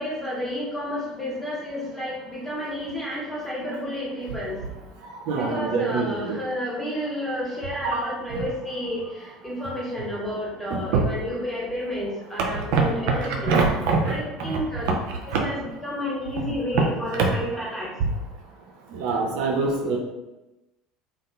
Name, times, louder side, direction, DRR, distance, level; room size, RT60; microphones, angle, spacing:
voice 1, 0.0-4.6 5.3-13.5 14.1-15.0 15.4-17.9, equal, 5° left, -6 dB, 0.9 m, -31 dB
voice 2, 5.3-6.4 7.8-8.0 8.3-8.4 10.7-11.0 12.5-12.8 13.3-14.2 14.5-14.6 15.3-15.4 16.7-16.8 17.1-17.3 18.9-20.0, right 4 dB, 60° right, 0 dB, 0.3 m, -24 dB
2.5 x 2.2 x 2.3 m, 1.0 s
figure-of-eight pair, 65°, 3 cm